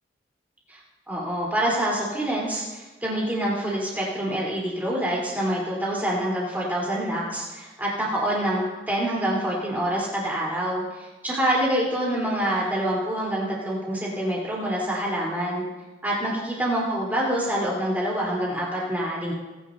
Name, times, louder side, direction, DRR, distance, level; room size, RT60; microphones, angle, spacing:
voice 1, 1.1-15.6 16.0-19.3, right 1 dB, 10° right, -5 dB, 4.0 m, -26 dB
21.5 x 11.0 x 2.8 m, 1.2 s
head